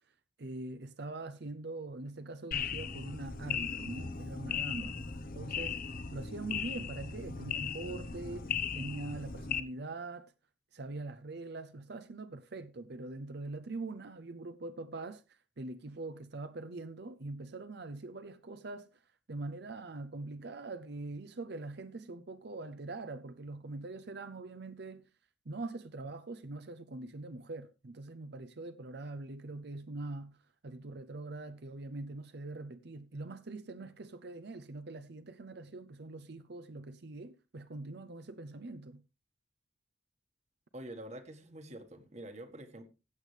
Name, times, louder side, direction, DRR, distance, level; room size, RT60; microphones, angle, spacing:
voice 1, 0.4-5.0 5.3-5.8 6.1-10.3 10.7-19.0 19.3-25.1 25.5-30.4 30.6-39.0, right 2 dB, 60° right, 0.7 m, -43 dB
sound 1, 2.5-9.6, left 7 dB, 50° left, 0.8 m, -38 dB
voice 2, 4.8-5.1 40.7-42.8, right 1 dB, 35° right, 1.6 m, -47 dB
15.5 x 8.4 x 3.3 m
head